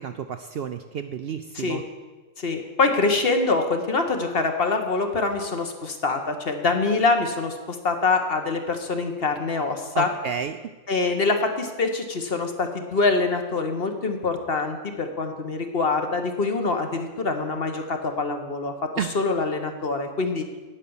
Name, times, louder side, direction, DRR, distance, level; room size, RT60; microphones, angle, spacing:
voice 1, 0.0-1.8 9.9-10.6 19.0-19.1, right 7 dB, 65° right, 8 dB, 0.6 m, -31 dB
voice 2, 2.4-10.1 10.9-20.5, left 3 dB, 50° left, 5 dB, 1.3 m, -25 dB
9.2 x 8.8 x 7.0 m, 1.3 s
omnidirectional pair, 1.4 m